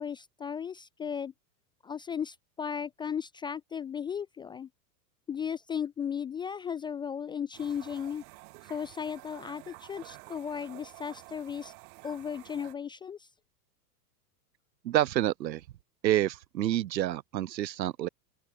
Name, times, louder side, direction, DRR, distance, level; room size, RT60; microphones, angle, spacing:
voice 1, 0.0-1.3 1.8-4.7 5.3-8.2 8.7-11.7 12.0-13.3, left 7 dB, 10° left, 0.3 m, -36 dB
sound 1, 7.5-12.7, right 27 dB, 55° right, 6.8 m, -50 dB
voice 2, 14.8-15.6 16.0-18.1, right 13 dB, 85° right, 1.3 m, -28 dB
open air
hypercardioid pair, 115°, 49 cm